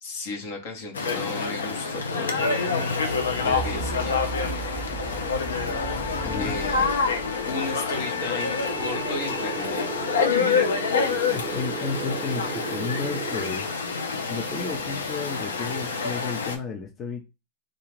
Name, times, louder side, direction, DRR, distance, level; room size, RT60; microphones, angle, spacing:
voice 1, 0.0-3.1 3.4-4.1 6.4-6.9 7.4-9.9, left 2 dB, 60° left, 0.9 m, -35 dB
sound 1, 0.9-16.6, left 5 dB, 85° left, 0.5 m, -27 dB
sound 2, 2.9-10.7 11.3-11.4, right 4 dB, ahead, 1.0 m, -38 dB
sound 3, 8.6-13.5, right 7 dB, 30° right, 0.4 m, -35 dB
voice 2, 11.3-13.7 14.3-17.2, left 5 dB, 30° left, 0.6 m, -32 dB
2.4 x 2.4 x 3.2 m
hypercardioid pair, 95°, 0 cm